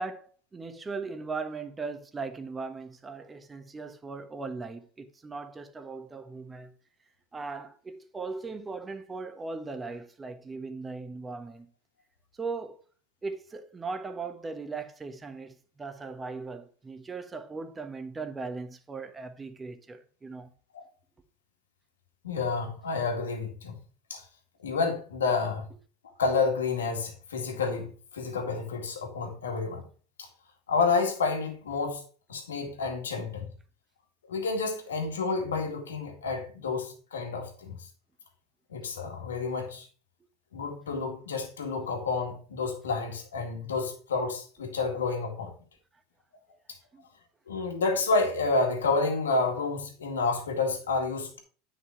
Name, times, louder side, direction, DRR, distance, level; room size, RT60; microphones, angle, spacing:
voice 1, 0.0-6.7 7.3-11.7 12.3-12.8 13.2-20.5 46.9-47.0, right 4 dB, 20° right, 1.3 m, -38 dB
voice 2, 22.2-23.8 24.1-24.2 24.6-25.7 26.2-29.9 30.2-30.3 30.7-32.0 32.3-33.5 34.2-37.8 38.7-39.9 40.5-45.5 47.5-51.4, left 4 dB, 85° left, 2.0 m, -29 dB
9.7 x 5.2 x 4.5 m
hypercardioid pair, 85°, 0 cm